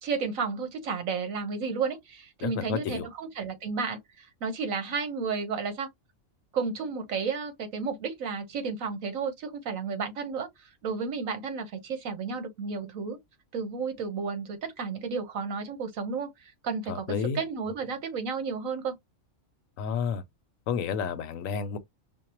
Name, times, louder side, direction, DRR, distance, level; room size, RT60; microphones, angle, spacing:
voice 1, 0.0-5.9 6.5-10.5 10.8-13.2 13.5-18.9, right 5 dB, 80° right, 1.4 m, -32 dB
voice 2, 2.4-3.1 16.9-17.4 19.8-20.2 20.7-21.8, left 7 dB, 80° left, 1.0 m, -31 dB
5.2 x 2.1 x 2.8 m
omnidirectional pair, 1.4 m